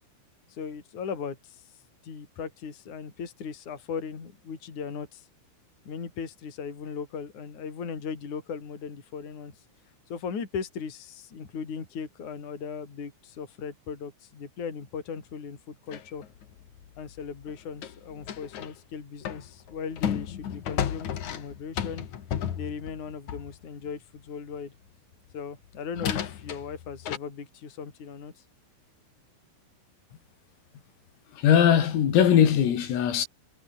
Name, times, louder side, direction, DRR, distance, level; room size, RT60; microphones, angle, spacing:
voice 1, 0.5-1.6 2.0-5.3 5.9-9.5 10.1-16.2 17.0-22.1 22.6-24.7 25.3-28.4, left 6 dB, 40° left, 5.3 m, -38 dB
sound 1, 15.9-18.8 19.2-23.6 25.3-25.4 25.9-27.2, left 9 dB, 55° left, 2.3 m, -34 dB
voice 2, 31.4-33.3, left 9 dB, 85° left, 6.2 m, -20 dB
omnidirectional pair, 5.9 m